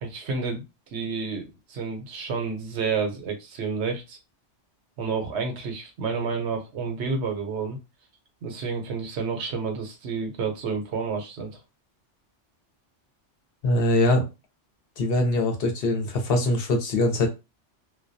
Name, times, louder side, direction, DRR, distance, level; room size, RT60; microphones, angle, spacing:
voice 1, 0.0-0.6 0.9-4.2 5.0-7.8 8.4-11.6, right 5 dB, 70° right, 5 dB, 0.9 m, -30 dB
voice 2, 13.6-14.3 15.0-17.3, left 1 dB, 60° left, 4 dB, 0.8 m, -22 dB
2.2 x 2.2 x 2.5 m, 0.26 s
omnidirectional pair, 1.2 m